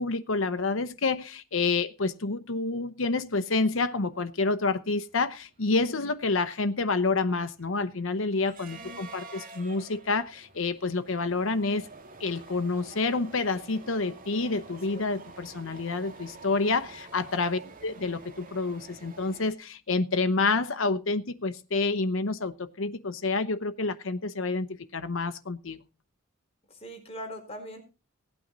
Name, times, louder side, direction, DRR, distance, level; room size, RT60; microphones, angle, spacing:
voice 1, 0.0-11.9 12.2-25.8, left 3 dB, 80° left, 1.0 m, -28 dB
sound 1, 4.1-4.2 4.5-4.7 5.1-19.5, right 3 dB, 45° right, 2.1 m, -49 dB
voice 2, 8.7-9.1 14.9-15.0 17.5-17.7 26.7-27.8, equal, 30° left, 4.8 m, -42 dB
17.5 x 9.2 x 4.1 m
head